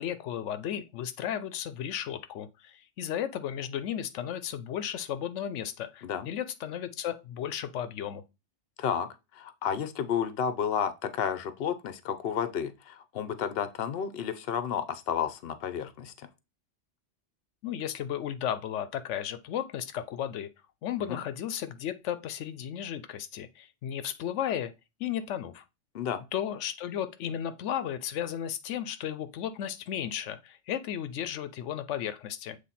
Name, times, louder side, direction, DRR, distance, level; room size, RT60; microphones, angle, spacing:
voice 1, 0.0-8.2 17.6-20.5 20.8-24.7 25.0-25.6 26.3-32.6, left 10 dB, 85° left, 0.9 m, -34 dB
voice 2, 8.8-16.3 21.1-21.2 25.9-26.2, left 8 dB, 60° left, 0.9 m, -32 dB
7.4 x 3.2 x 4.1 m
omnidirectional pair, 1.2 m